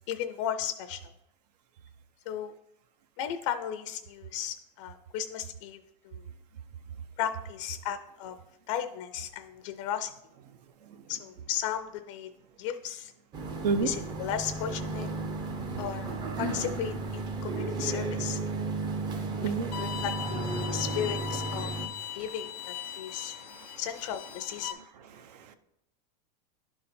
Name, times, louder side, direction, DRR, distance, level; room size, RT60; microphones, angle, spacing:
voice 1, 0.1-1.1 2.3-2.5 3.2-5.8 6.0-6.2 7.2-8.4 8.7-10.1 11.1-12.3 12.6-13.1 13.4-15.1 15.8-18.4 19.1-19.5 19.8-21.7 22.1-23.3 23.8-24.8, left 9 dB, 50° left, 9 dB, 0.4 m, -35 dB
sound 1, 13.3-21.9, right 3 dB, 20° right, 0.5 m, -34 dB
Bowed string instrument, 19.7-24.7, left 10 dB, 85° left, 0.9 m, -39 dB
voice 2, 22.9-23.8 25.1-25.5, right 5 dB, 80° right, 10 dB, 0.6 m, -33 dB
11.0 x 3.9 x 4.2 m, 0.81 s
supercardioid pair, 165°, 20 cm